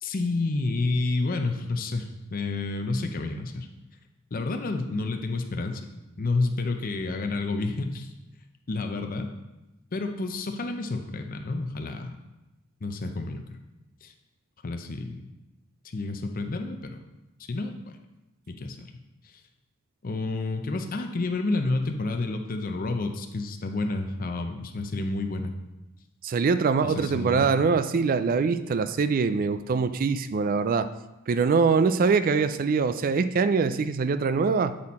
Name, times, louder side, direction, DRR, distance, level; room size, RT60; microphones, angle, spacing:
voice 1, 0.0-3.7 4.3-5.8 6.2-8.1 8.7-9.3 9.9-12.2 12.8-13.4 14.0-14.1 14.6-15.3 15.9-17.0 17.4-17.7 18.5-18.9 19.2-19.4 20.0-25.5 26.8-27.5, left 3 dB, 45° left, 5 dB, 0.6 m, -29 dB
voice 2, 26.2-30.9 31.3-34.8, right 5 dB, 40° right, 12 dB, 0.3 m, -23 dB
8.6 x 4.2 x 4.2 m, 1.0 s
head